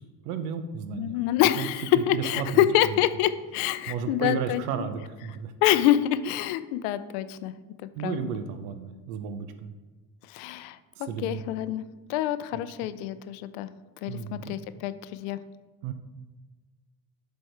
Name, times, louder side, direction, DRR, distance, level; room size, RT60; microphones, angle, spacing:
voice 1, 0.2-1.1 1.6-3.0 3.9-5.5 8.0-9.7 11.0-11.4 12.5-12.9 14.1-14.6 15.8-15.9, right 7 dB, 85° right, 9 dB, 0.6 m, -33 dB
voice 2, 0.9-4.6 5.6-7.5 8.0-8.2 10.3-10.8 11.2-13.7 14.0-15.4, left 12 dB, 80° left, 13 dB, 0.5 m, -26 dB
7.6 x 3.5 x 4.5 m, 1.3 s
supercardioid pair, 75°, 45 cm